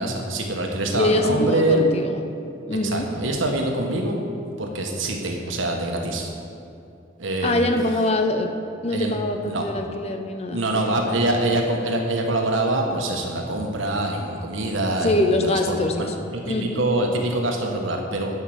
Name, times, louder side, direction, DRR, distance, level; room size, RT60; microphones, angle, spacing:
voice 1, 0.0-1.9 2.8-4.2 4.6-6.3 7.2-7.7 8.9-9.1 9.4-9.7 10.5-18.4, right 1 dB, 85° right, 1 dB, 1.3 m, -24 dB
voice 2, 1.0-2.2 2.7-3.1 7.4-8.5 8.8-10.8 15.0-16.9, left 1 dB, 30° left, 5 dB, 0.6 m, -23 dB
11.0 x 5.7 x 6.5 m, 2.5 s
head